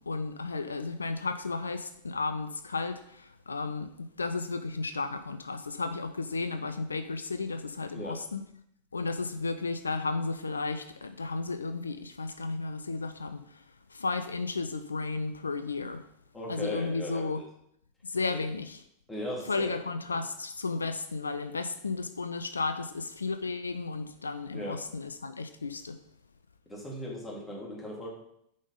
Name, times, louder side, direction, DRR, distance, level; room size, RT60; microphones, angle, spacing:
voice 1, 0.0-8.4 8.9-13.6 13.9-16.0 16.5-17.4 18.0-18.8 19.5-26.0, left 3 dB, 75° left, 9 dB, 0.3 m, -33 dB
voice 2, 16.3-17.4 18.3-18.4 19.1-19.8 24.5-24.8 26.7-28.1, equal, 5° left, -3 dB, 2.1 m, -38 dB
5.2 x 5.0 x 5.4 m, 0.74 s
figure-of-eight pair, 90°, 0 cm